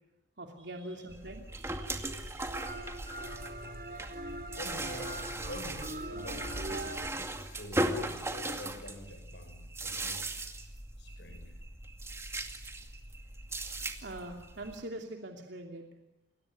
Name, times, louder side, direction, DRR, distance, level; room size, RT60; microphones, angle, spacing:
voice 1, 0.4-2.9 14.0-15.9, right 1 dB, 85° right, 2 dB, 2.8 m, -44 dB
sound 1, 1.1-14.8, right 1 dB, 15° right, 2.2 m, -38 dB
sound 2, 1.2-7.1, right 1 dB, 55° right, 2.9 m, -42 dB
voice 2, 4.5-6.9 7.4-10.4 11.0-11.6, left 1 dB, 85° left, 5 dB, 6.7 m, -47 dB
28.5 x 21.5 x 9.6 m, 0.90 s
head